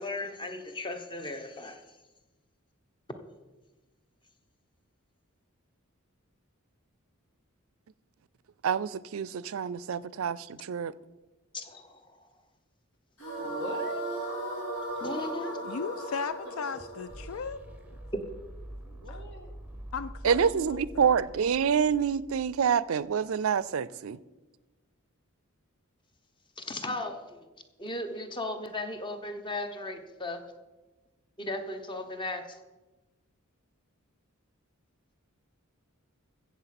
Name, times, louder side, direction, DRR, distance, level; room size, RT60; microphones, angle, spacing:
voice 1, 0.0-1.8 3.1-3.2 11.5-12.3 15.0-15.6 18.1-18.2 26.6-27.5 27.8-30.4 31.4-32.6, left 2 dB, 20° left, 8 dB, 1.0 m, -36 dB
voice 2, 8.6-10.9 20.2-24.2, right 7 dB, 70° right, 19 dB, 0.4 m, -27 dB
sound 1, 13.2-18.4, right 1 dB, 90° left, 4.5 m, -37 dB
voice 3, 13.4-14.1 15.3-16.0 18.7-19.8, left 1 dB, 55° left, 5 dB, 1.8 m, -42 dB
sound 2, 14.9-23.0, right 1 dB, 5° right, 0.8 m, -47 dB
voice 4, 15.6-17.6 19.1-19.2 19.9-21.3, left 5 dB, 70° left, 14 dB, 0.4 m, -37 dB
15.0 x 7.5 x 5.9 m, 1.2 s
head